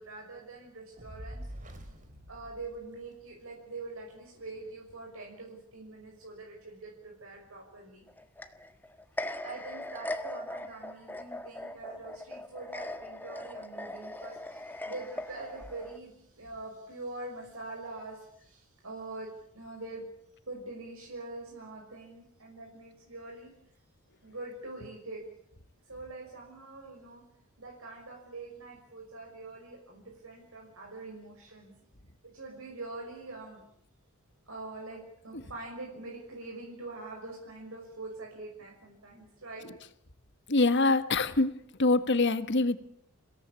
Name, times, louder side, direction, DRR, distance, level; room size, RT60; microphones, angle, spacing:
voice 1, 0.0-1.5 1.8-1.9 2.3-8.1 9.2-20.0 20.5-23.5 24.2-25.2 25.9-27.2 27.6-31.7 32.2-33.6 34.5-39.6, right 2 dB, 65° right, -1 dB, 6.1 m, -44 dB
Fire, 1.0-3.4, equal, 35° right, 3.6 m, -45 dB
sound 1, 8.1-16.0, left 1 dB, 10° left, 1.5 m, -40 dB
voice 2, 40.5-41.5 41.8-42.8, left 3 dB, 55° left, 12 dB, 1.6 m, -24 dB
30.0 x 17.5 x 8.5 m, 0.73 s
head